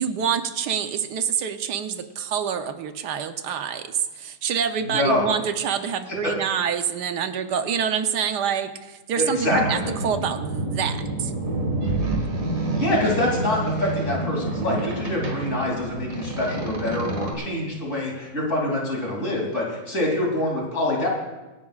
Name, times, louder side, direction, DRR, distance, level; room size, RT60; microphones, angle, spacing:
voice 1, 0.0-11.3, right 7 dB, 85° right, 8 dB, 1.4 m, -26 dB
voice 2, 4.8-5.3 6.2-6.3 9.2-9.8 12.8-21.1, left 1 dB, 50° left, -2 dB, 3.3 m, -25 dB
Boat Water vehicle, 9.5-17.3, right 2 dB, 55° right, 2.1 m, -28 dB
26.0 x 11.0 x 2.4 m, 1.2 s
omnidirectional pair, 1.7 m